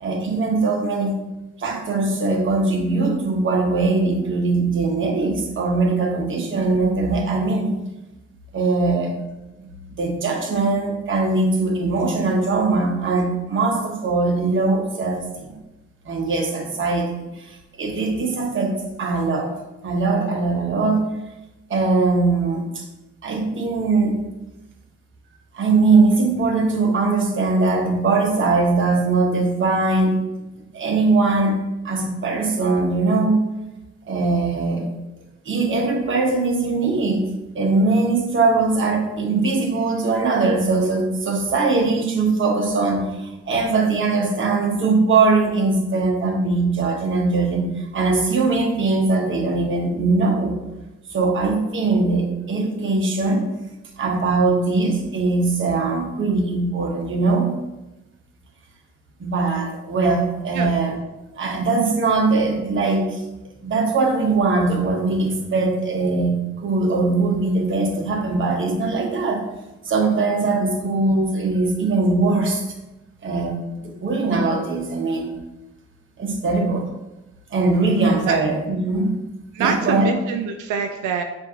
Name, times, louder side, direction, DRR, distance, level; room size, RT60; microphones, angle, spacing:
voice 1, 0.0-1.2 1.6-7.7 8.5-9.2 9.9-15.6 16.0-19.5 19.8-21.1 21.7-22.9 23.2-24.2 25.5-30.2 30.7-31.6 31.8-33.4 34.1-34.9 35.4-37.2 37.5-50.6 51.1-53.5 54.0-57.7 59.2-61.0 61.4-63.2 63.6-69.5 69.8-72.6 73.2-75.4 76.2-76.9 77.5-79.1 79.6-80.1, right 3 dB, 40° right, 2 dB, 1.0 m, -21 dB
voice 2, 77.7-78.4 79.5-81.2, right 6 dB, 85° right, 4 dB, 0.5 m, -26 dB
6.9 x 2.6 x 2.8 m, 1.0 s
cardioid pair, 90°, 30 cm